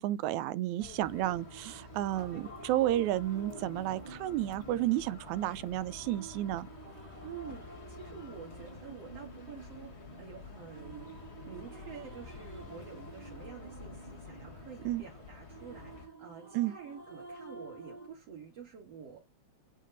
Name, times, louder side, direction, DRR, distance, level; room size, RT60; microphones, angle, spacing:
voice 1, 0.0-6.7 14.9-15.0 16.5-16.7, right 14 dB, 80° right, 1.9 m, -32 dB
sound 1, 0.8-16.1, left 4 dB, 40° left, 0.9 m, -49 dB
sound 2, 1.0-18.1, right 4 dB, 35° right, 0.7 m, -51 dB
voice 2, 7.2-19.2, right 7 dB, 60° right, 2.7 m, -49 dB
8.4 x 3.6 x 3.9 m
omnidirectional pair, 3.3 m